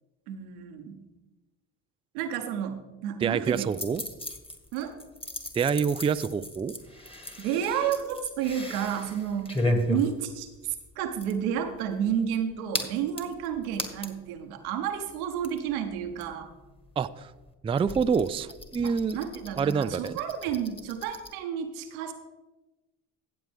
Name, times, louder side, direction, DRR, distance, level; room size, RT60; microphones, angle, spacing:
voice 1, 0.3-1.1 2.1-3.7 4.7-5.0 7.4-16.5 18.8-22.1, right 9 dB, 85° right, 6 dB, 1.1 m, -31 dB
voice 2, 3.2-4.0 5.5-6.7 17.0-17.3 17.6-19.2 19.6-20.2, right 6 dB, 15° right, 13 dB, 0.3 m, -27 dB
sound 1, 3.4-14.3 14.6-14.7 14.9-21.3, left 1 dB, 15° left, 1.8 m, -36 dB
14.5 x 8.0 x 3.5 m, 1.1 s
hypercardioid pair, 55°, 42 cm